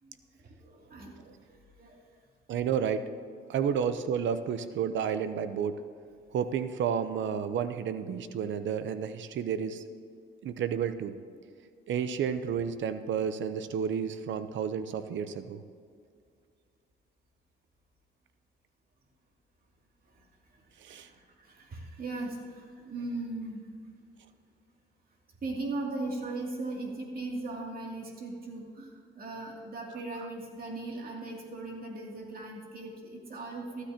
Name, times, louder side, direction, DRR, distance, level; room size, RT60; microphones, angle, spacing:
voice 1, 0.0-1.2 1.5-2.0 20.1-20.2 20.5-23.6 25.4-33.8, right 2 dB, 50° right, -1 dB, 2.7 m, -39 dB
voice 2, 2.5-3.0 3.5-5.8 6.3-9.8 10.4-11.1 11.9-15.6 20.8-21.1, right 7 dB, 70° right, 11 dB, 0.8 m, -31 dB
15.0 x 13.0 x 2.9 m, 2.2 s
cardioid pair, 90°, 20 cm